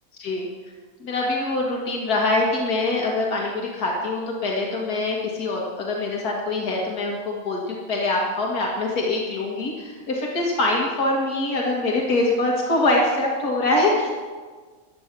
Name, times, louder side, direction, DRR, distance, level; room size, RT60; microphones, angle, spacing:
voice 1, 1.0-7.6 7.9-14.1, left 2 dB, 85° left, -2 dB, 2.2 m, -24 dB
14.5 x 9.7 x 6.0 m, 1.4 s
omnidirectional pair, 1.6 m